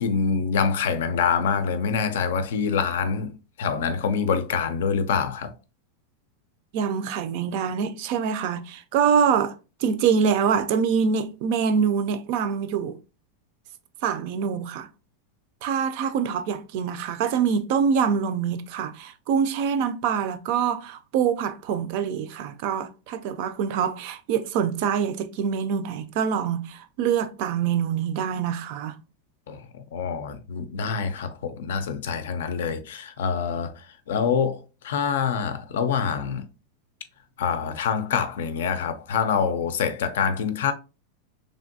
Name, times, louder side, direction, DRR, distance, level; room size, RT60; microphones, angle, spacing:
voice 1, 0.0-3.3 3.6-5.5 29.5-36.5 37.4-40.7, left 6 dB, 90° left, 0.5 m, -26 dB
voice 2, 6.7-9.5 9.8-13.0 14.0-14.9 15.6-29.0, right 7 dB, 45° right, 0.3 m, -25 dB
3.2 x 2.6 x 2.6 m
supercardioid pair, 175°, 0 cm